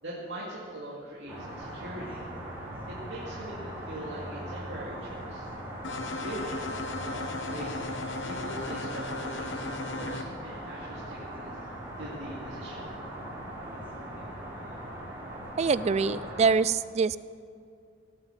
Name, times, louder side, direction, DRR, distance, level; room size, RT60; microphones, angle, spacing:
voice 1, 0.0-2.3 2.9-5.5 6.2-6.6 7.0-7.8 8.2-11.6 12.0-12.9, equal, 70° right, -6 dB, 2.3 m, -42 dB
sound 1, 1.3-16.5, right 1 dB, 10° right, 3.8 m, -40 dB
sound 2, 5.8-10.2, left 3 dB, 75° left, 1.2 m, -36 dB
voice 2, 15.6-17.2, right 5 dB, 35° right, 17 dB, 0.3 m, -25 dB
17.0 x 7.9 x 7.3 m, 2.3 s
head